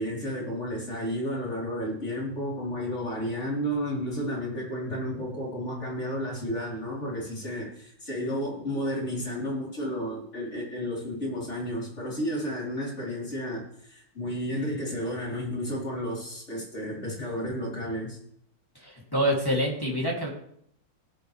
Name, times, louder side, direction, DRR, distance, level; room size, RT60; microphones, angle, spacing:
voice 1, 0.0-18.2, equal, 30° left, -4 dB, 4.4 m, -32 dB
voice 2, 18.8-20.3, equal, 10° left, -3 dB, 2.7 m, -26 dB
17.5 x 8.8 x 3.4 m, 0.68 s
omnidirectional pair, 2.3 m